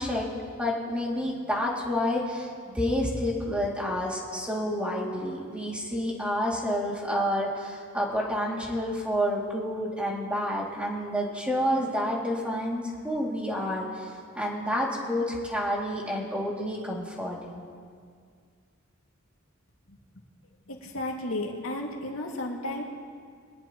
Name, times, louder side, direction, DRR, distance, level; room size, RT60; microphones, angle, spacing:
voice 1, 0.0-14.1 14.3-17.6, equal, 5° right, -3 dB, 2.5 m, -29 dB
voice 2, 20.7-22.8, left 1 dB, 85° left, 0 dB, 2.3 m, -33 dB
22.0 x 19.0 x 3.1 m, 2.1 s
head